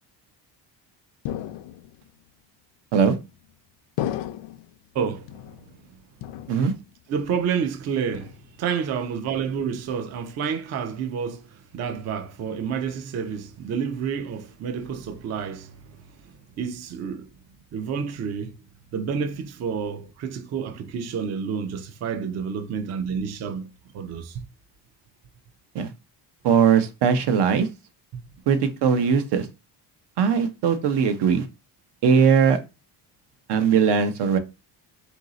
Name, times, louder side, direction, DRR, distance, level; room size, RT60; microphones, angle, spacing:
sound 1, 1.3-2.1 2.9-3.5 4.0-4.8 5.3-5.9 6.2-7.0 7.3-7.7 8.1-8.7, left 12 dB, 90° left, 0.5 m, -35 dB
voice 1, 4.9-5.4 7.1-17.3 17.7-18.5 18.9-23.7 23.9-24.5 28.1-28.2, right 6 dB, 40° right, 0.4 m, -29 dB
voice 2, 26.4-27.7 28.5-29.5 30.2-31.5 32.0-32.6 33.5-34.4, right 6 dB, 70° right, 0.7 m, -20 dB
3.9 x 2.6 x 3.8 m
cardioid pair, 155°, 42 cm